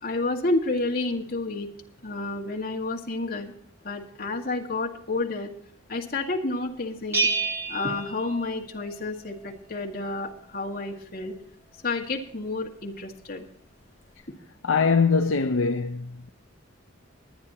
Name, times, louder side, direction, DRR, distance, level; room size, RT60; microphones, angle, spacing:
voice 1, 0.0-1.7 2.0-3.5 3.8-5.5 5.9-7.3 7.7-11.3 11.8-13.5, left 2 dB, 50° left, 2.1 m, -30 dB
Bell, 7.1-9.0, right 4 dB, 15° right, 2.0 m, -28 dB
voice 2, 14.6-16.3, left 5 dB, 75° left, 0.5 m, -22 dB
22.0 x 9.8 x 2.9 m
head